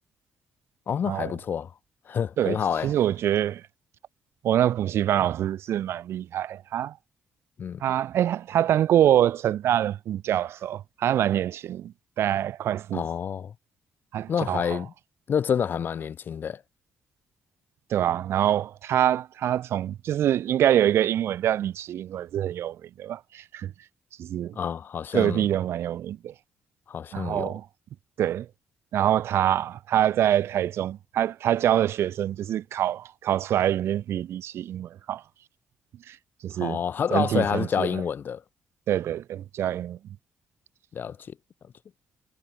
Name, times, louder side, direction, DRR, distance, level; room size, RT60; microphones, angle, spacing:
voice 1, 0.9-1.7 2.1-2.9 7.6-7.8 12.9-13.5 14.3-14.9 15.3-16.6 24.6-25.4 26.9-27.6 36.6-38.4 40.9-41.2, left 7 dB, 50° left, 0.4 m, -28 dB
voice 2, 2.8-3.6 4.4-6.9 7.8-13.0 14.1-14.8 17.9-23.7 24.2-24.6 25.1-26.3 27.1-27.6 28.2-28.5 28.9-35.2 36.1-36.2 36.4-36.8 37.1-38.0 38.9-40.0, right 11 dB, 75° right, 0.7 m, -25 dB
cardioid pair, 105°, 4 cm